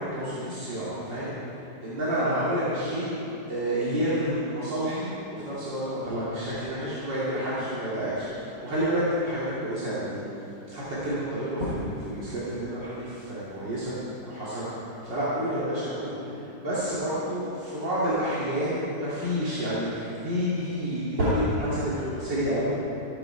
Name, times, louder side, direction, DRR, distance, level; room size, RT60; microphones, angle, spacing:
voice 1, 0.0-3.1 3.5-10.2 10.7-14.0 14.2-22.8, equal, 70° right, -11 dB, 3.6 m, -29 dB
25.5 x 9.2 x 4.6 m, 3.0 s
omnidirectional pair, 2.0 m